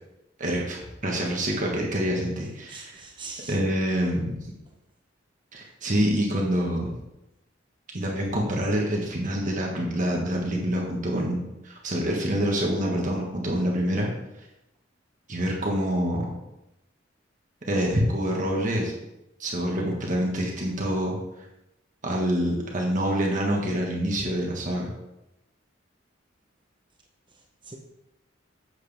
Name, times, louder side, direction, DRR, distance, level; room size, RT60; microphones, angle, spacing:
voice 1, 0.4-0.8 1.0-2.9 3.5-4.4 5.5-6.9 7.9-14.1 15.3-16.3 17.6-18.9 19.4-21.2 22.0-24.9, equal, 45° right, -1 dB, 1.5 m, -26 dB
voice 2, 2.7-3.6 27.3-27.8, right 3 dB, 25° right, 1 dB, 0.8 m, -42 dB
8.0 x 7.5 x 3.5 m, 0.91 s
head